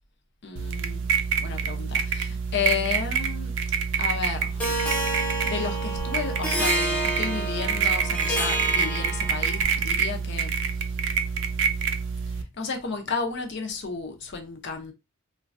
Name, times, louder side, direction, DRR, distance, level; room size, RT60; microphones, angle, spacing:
voice 1, 0.4-1.1 1.4-3.5 4.0-4.7 5.4-10.8 12.3-14.9, left 5 dB, 55° left, 0.6 m, -32 dB
sound 1, 0.6-12.4, right 6 dB, 55° right, 0.4 m, -27 dB
Harp, 4.6-9.6, right 1 dB, 5° left, 0.6 m, -29 dB
3.1 x 2.2 x 2.5 m
head